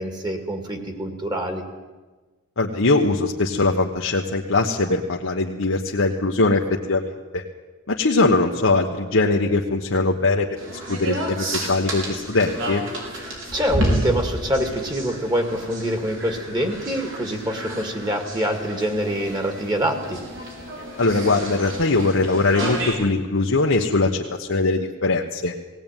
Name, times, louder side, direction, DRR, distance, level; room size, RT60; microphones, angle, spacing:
voice 1, 0.0-1.6 13.3-20.2, equal, 20° right, 5 dB, 2.3 m, -25 dB
voice 2, 2.6-6.6 6.9-7.4 7.9-12.8 21.0-25.5, left 3 dB, 75° left, -1 dB, 1.3 m, -21 dB
sound 1, 10.6-22.9, right 1 dB, 70° right, 5.9 m, -30 dB
18.5 x 18.0 x 9.1 m, 1.3 s
head